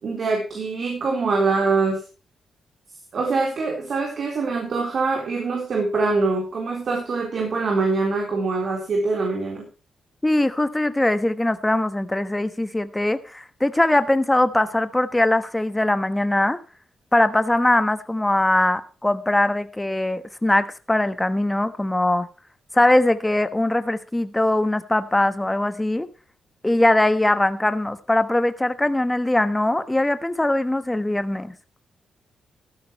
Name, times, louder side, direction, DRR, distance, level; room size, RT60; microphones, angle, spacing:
voice 1, 0.0-2.0 3.1-9.7, right 3 dB, 60° right, 0 dB, 3.9 m, -24 dB
voice 2, 10.2-16.6 17.1-22.3 22.7-26.1 26.6-31.5, left 1 dB, 15° left, 11 dB, 1.2 m, -21 dB
14.5 x 12.0 x 3.1 m, 0.35 s
cardioid pair, 75°, 0 cm